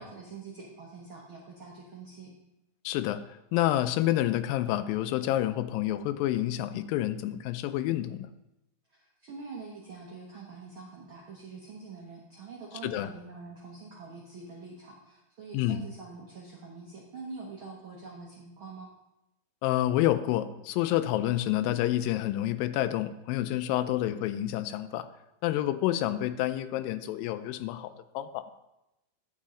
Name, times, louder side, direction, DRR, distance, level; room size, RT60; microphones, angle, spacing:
voice 1, 0.0-2.3 9.2-18.9, right 4 dB, 85° right, -2 dB, 1.1 m, -45 dB
voice 2, 2.9-3.2 3.5-8.3 12.8-13.1 15.5-15.9 19.6-25.1 25.4-28.4, left 13 dB, 85° left, 12 dB, 2.2 m, -28 dB
9.9 x 7.2 x 3.7 m, 0.90 s
omnidirectional pair, 4.0 m